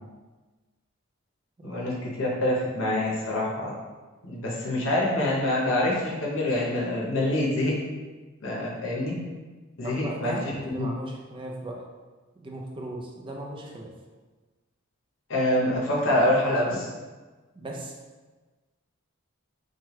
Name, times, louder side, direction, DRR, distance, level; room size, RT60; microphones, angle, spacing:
voice 1, 1.6-3.7 4.3-7.8 8.4-9.2 9.8-10.4 10.8-10.9 15.3-16.9, left 1 dB, 70° left, -4 dB, 0.8 m, -25 dB
voice 2, 9.8-11.8 12.4-13.9 17.5-17.9, right 1 dB, 25° right, -1 dB, 0.4 m, -37 dB
3.1 x 2.2 x 3.0 m, 1.3 s
head